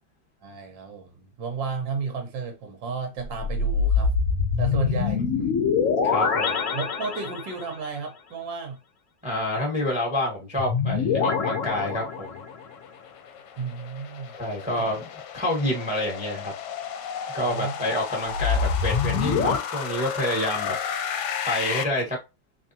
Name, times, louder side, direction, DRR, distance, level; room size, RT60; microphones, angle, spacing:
voice 1, 0.4-4.1 4.6-5.2 6.0-8.8 13.6-14.3 14.7-15.0 17.4-17.9, right 5 dB, 80° right, 1.6 m, -33 dB
sound 1, 3.2-7.7 10.6-12.7 18.3-19.6, left 5 dB, 55° left, 1.0 m, -25 dB
voice 2, 6.0-6.6 9.2-12.4 14.3-15.1 15.3-16.5 17.3-20.8 21.4-22.2, left 1 dB, 5° right, 0.8 m, -28 dB
sound 2, 12.3-21.8, left 8 dB, 75° left, 1.2 m, -33 dB
3.5 x 3.4 x 2.7 m
omnidirectional pair, 2.0 m